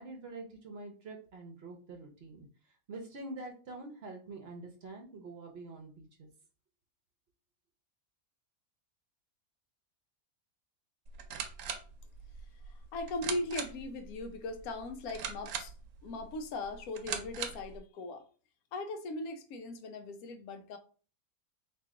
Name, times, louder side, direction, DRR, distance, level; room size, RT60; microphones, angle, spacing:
voice 1, 0.0-2.5 2.9-6.3, right 2 dB, 55° right, 0.9 m, -46 dB
sound 1, 11.1-17.8, right 7 dB, 85° right, 1.1 m, -42 dB
voice 2, 12.7-15.7 16.0-18.3 18.7-20.8, left 2 dB, 80° left, 1.1 m, -39 dB
3.1 x 2.9 x 3.6 m
omnidirectional pair, 1.5 m